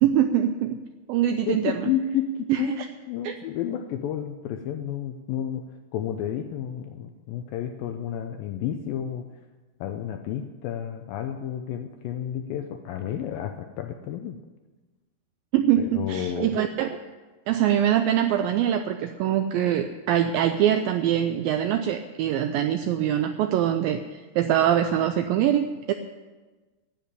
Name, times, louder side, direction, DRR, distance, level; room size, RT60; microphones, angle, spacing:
voice 1, 0.0-0.8 1.1-1.9 2.5-2.9 3.2-3.3 15.5-17.0 17.5-25.9, right 10 dB, 85° right, 7 dB, 2.0 m, -23 dB
voice 2, 1.5-5.6 5.9-9.3 9.8-14.4 15.8-16.6, left 9 dB, 80° left, 6 dB, 2.1 m, -31 dB
10.5 x 9.0 x 10.0 m, 1.3 s
omnidirectional pair, 4.7 m